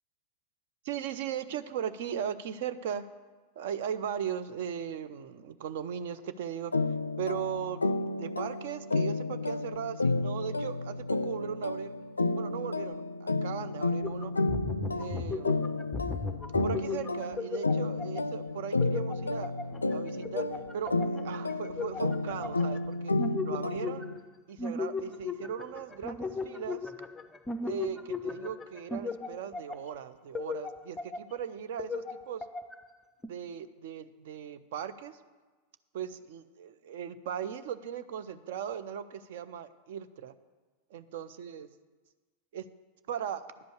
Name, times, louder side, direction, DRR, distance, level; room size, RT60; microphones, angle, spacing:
voice 1, 0.8-3.0 3.6-6.7 7.2-7.9 8.2-11.9 12.3-14.3 14.9-15.9 16.6-19.5 19.9-20.5 20.7-23.1 23.4-24.1 24.5-26.9 27.6-32.4 33.3-35.2 35.9-40.3 40.9-41.7 42.5-42.7 43.1-43.5, right 8 dB, 55° right, 12 dB, 0.6 m, -38 dB
sound 1, 6.7-24.2, left 2 dB, 80° left, 0.3 m, -31 dB
sound 2, 14.0-18.4 18.8-22.8 23.1-24.3 24.6-29.9 30.3-31.4 31.8-32.9 33.2-33.3, left 4 dB, 10° left, 0.5 m, -37 dB
10.5 x 5.2 x 8.0 m, 1.3 s
figure-of-eight pair, 90°, 0 cm